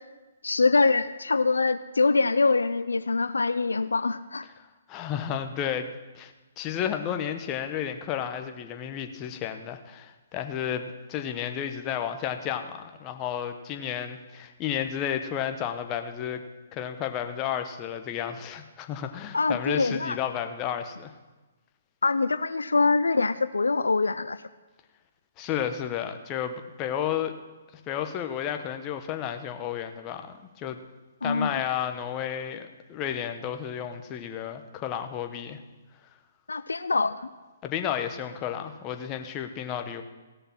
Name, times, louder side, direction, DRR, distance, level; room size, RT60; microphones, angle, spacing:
voice 1, 0.4-4.5 19.3-20.2 22.0-24.4 31.2-31.6 36.5-37.2, left 3 dB, 85° left, 13 dB, 0.4 m, -24 dB
voice 2, 4.9-5.9 6.1-16.4 16.7-21.1 25.4-27.3 27.9-30.8 31.2-35.6 37.6-40.0, left 9 dB, 25° left, 7 dB, 1.0 m, -32 dB
16.0 x 6.7 x 5.9 m, 1.2 s
hypercardioid pair, 135°, 0 cm